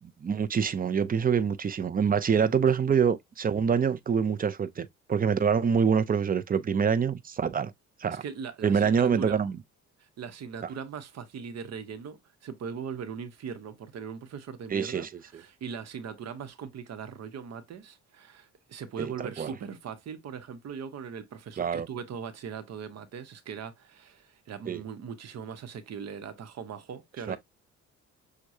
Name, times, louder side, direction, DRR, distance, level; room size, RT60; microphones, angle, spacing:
voice 1, 0.0-7.7 8.0-8.2 8.6-9.5 14.7-15.1 19.0-19.5 21.6-21.9 24.7-24.8 27.3-27.4, right 6 dB, 30° right, 0.5 m, -26 dB
voice 2, 8.1-9.4 10.2-27.4, right 6 dB, 60° right, 0.9 m, -40 dB
6.2 x 2.3 x 2.7 m
cardioid pair, 90°, 30 cm